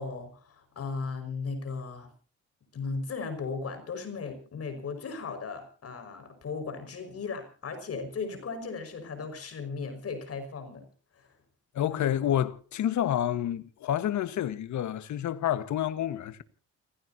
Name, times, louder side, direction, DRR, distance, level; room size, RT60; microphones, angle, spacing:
voice 1, 0.0-2.1 2.7-10.9 11.1-11.3 11.9-12.2, left 4 dB, 50° left, 5.6 m, -36 dB
voice 2, 11.7-16.4, left 11 dB, 70° left, 1.5 m, -29 dB
29.5 x 16.0 x 2.8 m
cardioid pair, 90°, 30 cm